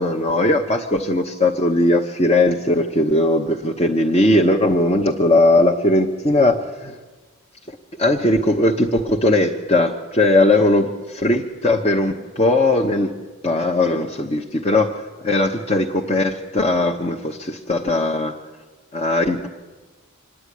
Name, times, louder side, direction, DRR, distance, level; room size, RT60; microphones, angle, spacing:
voice 1, 0.0-7.0 8.0-13.1 13.4-18.4 18.9-19.5, left 2 dB, 30° left, 0 dB, 1.0 m, -19 dB
26.0 x 9.9 x 9.9 m, 1.3 s
head